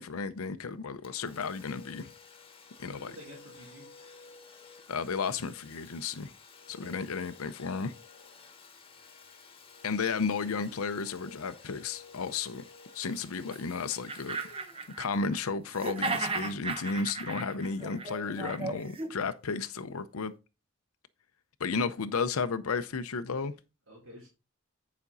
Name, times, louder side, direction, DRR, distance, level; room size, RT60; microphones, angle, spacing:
voice 1, 0.0-2.1 2.8-3.1 4.9-6.3 6.7-7.9 9.8-12.6 12.9-14.5 15.0-20.3 21.6-23.5, left 5 dB, 90° left, 0.6 m, -33 dB
Domestic sounds home sounds, 1.0-16.5, left 5 dB, 25° left, 1.4 m, -53 dB
voice 2, 2.8-3.9 6.8-7.1 23.9-24.3, equal, 70° right, 3.8 m, -50 dB
sound 1, 13.5-13.6 13.9-15.4 15.7-19.1, right 3 dB, 25° right, 0.8 m, -35 dB
9.8 x 5.1 x 4.0 m
head